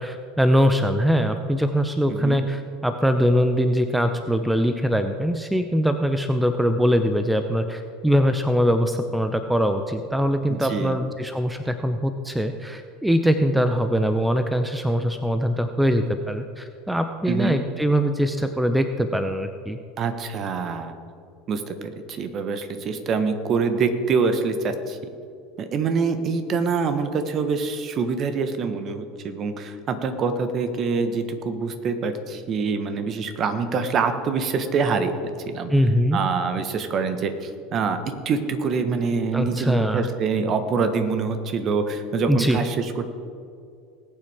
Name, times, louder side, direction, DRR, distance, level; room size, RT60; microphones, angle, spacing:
voice 1, 0.0-19.8 35.7-36.2 39.3-40.1 42.3-42.6, equal, 5° right, 8 dB, 0.7 m, -22 dB
voice 2, 10.5-10.9 17.3-17.6 20.0-20.9 21.5-25.0 25.6-35.7 36.1-38.0 38.2-43.1, right 5 dB, 40° right, 8 dB, 1.4 m, -25 dB
19.5 x 8.8 x 3.6 m, 2.4 s
hypercardioid pair, 75°, 0 cm